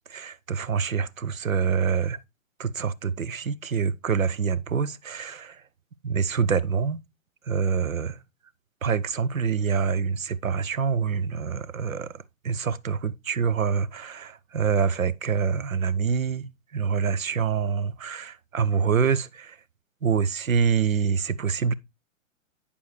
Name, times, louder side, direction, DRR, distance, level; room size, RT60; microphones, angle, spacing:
voice 1, 0.1-2.2 2.6-5.6 6.0-7.0 7.5-8.2 8.8-16.4 16.7-19.6 20.0-21.7, right 6 dB, 85° right, 0.6 m, -26 dB
8.5 x 6.9 x 3.1 m
figure-of-eight pair, 115°, 40 cm